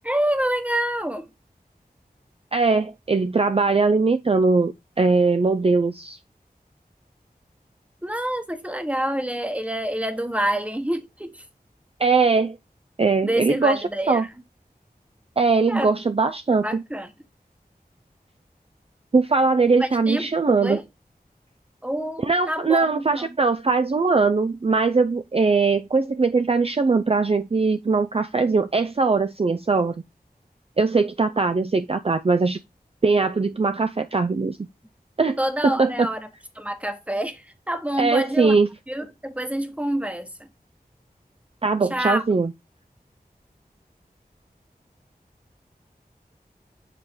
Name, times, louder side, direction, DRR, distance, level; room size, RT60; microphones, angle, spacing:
voice 1, 0.0-1.3 8.0-11.4 13.2-14.3 15.7-15.9 16.6-17.1 19.8-20.3 20.6-20.8 21.8-23.3 35.4-36.2 36.5-38.6 38.9-40.5 41.9-42.2, right 1 dB, 10° right, 1.1 m, -27 dB
voice 2, 2.5-6.2 12.0-12.6 13.0-14.2 15.4-16.8 19.1-20.8 22.2-30.0 30.8-32.6 33.0-34.6 35.2-35.4 35.6-36.1 38.0-38.7 41.6-42.5, right 4 dB, 40° right, 0.4 m, -21 dB
7.4 x 3.2 x 4.4 m
wide cardioid pair, 50°, 16 cm